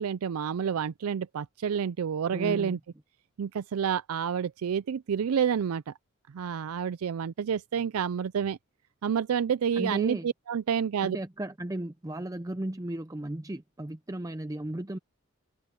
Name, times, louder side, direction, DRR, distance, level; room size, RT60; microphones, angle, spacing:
voice 1, 0.0-2.8 3.4-5.9 6.3-8.6 9.0-11.2, right 7 dB, 85° right, 0.4 m, -29 dB
voice 2, 2.3-2.8 9.8-10.3 11.0-15.0, right 1 dB, 15° right, 0.5 m, -35 dB
head